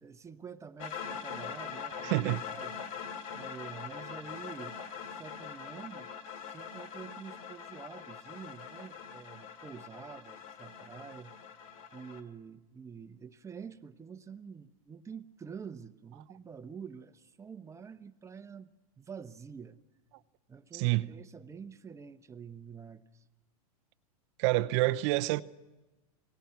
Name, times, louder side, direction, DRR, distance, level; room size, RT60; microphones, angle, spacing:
voice 1, 0.0-2.7 3.3-6.1 6.5-11.3 11.9-19.8 20.5-23.2, right 6 dB, 15° right, 1.0 m, -47 dB
sound 1, 0.8-12.2, left 7 dB, 65° left, 2.6 m, -43 dB
voice 2, 2.0-2.4 20.7-21.1 24.4-25.4, right 19 dB, 50° right, 0.8 m, -27 dB
29.0 x 20.0 x 5.9 m
hypercardioid pair, 115°, 19 cm